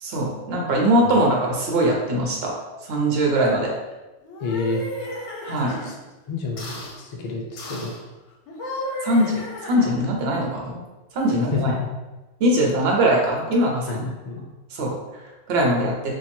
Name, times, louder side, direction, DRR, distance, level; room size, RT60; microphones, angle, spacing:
voice 1, 0.0-2.5 2.9-3.7 5.4-5.8 9.0-10.8 11.1-11.7 12.4-14.1 14.7-14.9 15.5-15.9, right 1 dB, 55° right, -1 dB, 1.0 m, -21 dB
sound 1, 4.2-5.9 6.6-7.0 7.6-8.0 8.5-10.2, left 1 dB, 70° left, 1.0 m, -34 dB
voice 2, 4.4-4.9 5.7-5.9 6.3-7.9 11.5-11.9 13.9-14.4, left 4 dB, 50° left, -1 dB, 0.5 m, -29 dB
2.9 x 2.5 x 4.2 m, 1.1 s
omnidirectional pair, 1.3 m